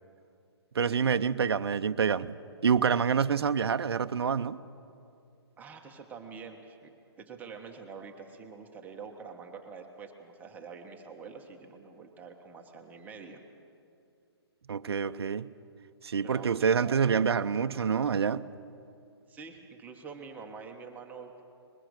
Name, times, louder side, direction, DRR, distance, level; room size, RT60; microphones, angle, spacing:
voice 1, 0.7-4.6 14.7-15.5 16.0-18.5, right 6 dB, 65° right, 0.7 m, -27 dB
voice 2, 5.6-13.4 16.2-17.3 19.3-21.4, right 5 dB, 10° right, 1.4 m, -46 dB
21.5 x 21.5 x 6.6 m
figure-of-eight pair, 135°, 14 cm